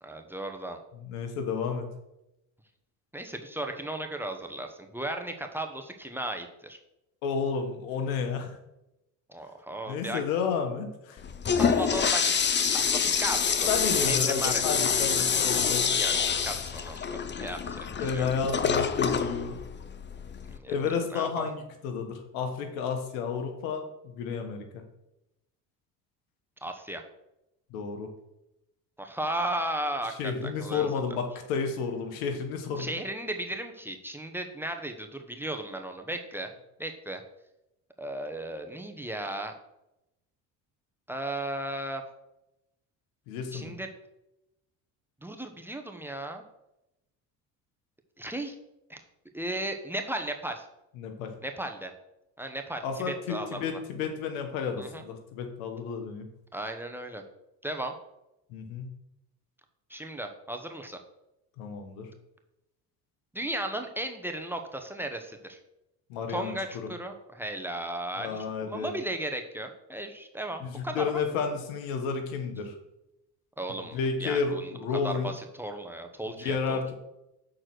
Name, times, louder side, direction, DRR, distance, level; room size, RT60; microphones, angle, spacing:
voice 1, 0.0-0.8 3.1-6.8 9.3-10.2 11.5-12.3 12.7-13.7 14.1-14.5 15.6-16.1 16.4-18.2 20.5-20.7 21.1-21.5 26.6-27.0 29.0-30.9 32.8-36.5 36.8-37.2 38.0-39.5 41.1-42.0 43.5-43.9 45.2-46.4 48.2-48.5 48.9-49.0 49.3-50.6 51.4-51.9 52.4-53.8 54.8-55.0 56.5-57.2 57.6-57.9 59.9-61.0 63.3-65.6 66.3-71.2 73.6-74.7 75.0-76.8, right 1 dB, 5° right, 4 dB, 1.0 m, -35 dB
voice 2, 1.0-1.9 7.2-8.6 9.9-11.2 13.7-15.9 18.0-19.6 20.7-24.8 27.7-28.1 30.1-32.9 43.3-43.8 51.0-51.3 52.8-56.3 58.5-58.9 61.6-62.1 66.1-66.5 68.2-69.0 70.6-72.7 73.9-75.3 76.4-76.9, left 5 dB, 90° left, 6 dB, 1.3 m, -31 dB
Toilet flush, 11.2-20.6, left 6 dB, 25° left, 0.7 m, -27 dB
6.5 x 4.4 x 6.1 m, 0.89 s
supercardioid pair, 80°, 41 cm